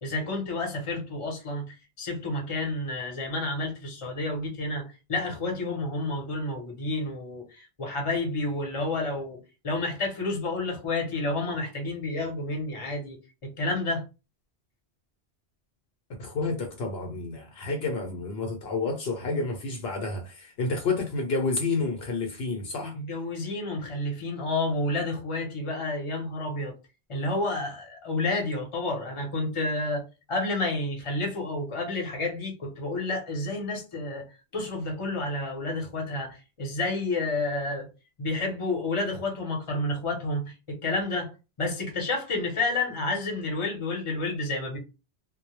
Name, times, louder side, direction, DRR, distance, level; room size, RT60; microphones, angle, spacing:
voice 1, 0.0-9.4 9.6-14.0 22.9-26.7 27.1-34.2 34.5-37.9 38.2-41.3 41.6-44.8, left 2 dB, 30° left, 0.8 m, -30 dB
voice 2, 16.2-23.0, left 3 dB, 70° left, 0.8 m, -30 dB
2.1 x 2.1 x 2.9 m
omnidirectional pair, 1.1 m